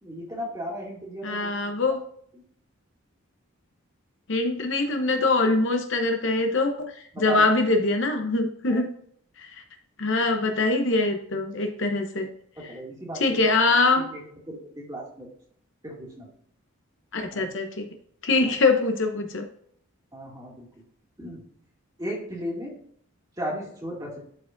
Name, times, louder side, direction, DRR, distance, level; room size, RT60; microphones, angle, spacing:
voice 1, 0.0-1.5 7.1-7.5 8.7-8.8 12.6-13.4 14.0-14.2 14.5-15.3 15.8-16.3 17.3-17.4 18.4-18.5 20.1-20.7 21.2-21.5 22.0-22.8 23.4-24.2, equal, 15° right, -3 dB, 2.3 m, -35 dB
voice 2, 1.2-2.0 4.3-6.9 7.2-8.9 9.4-9.5 10.0-12.3 12.6-12.7 13.1-14.1 17.1-17.9 18.2-19.5, left 3 dB, 55° left, 5 dB, 0.8 m, -23 dB
11.5 x 4.7 x 2.6 m, 0.64 s
head